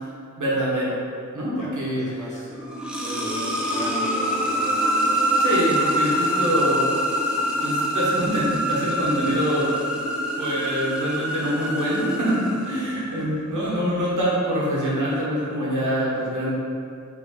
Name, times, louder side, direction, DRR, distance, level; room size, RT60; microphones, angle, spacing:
voice 1, 0.4-0.9 1.3-2.0 5.4-6.8 7.6-9.7 10.3-16.5, equal, 75° right, -7 dB, 1.1 m, -24 dB
voice 2, 2.0-2.6 2.9-4.7 12.9-13.1, left 1 dB, 25° left, -9 dB, 1.1 m, -39 dB
sound 1, 2.5-13.3, equal, 5° right, 0.5 m, -25 dB
3.4 x 3.3 x 3.5 m, 2.4 s
wide cardioid pair, 115°, 31 cm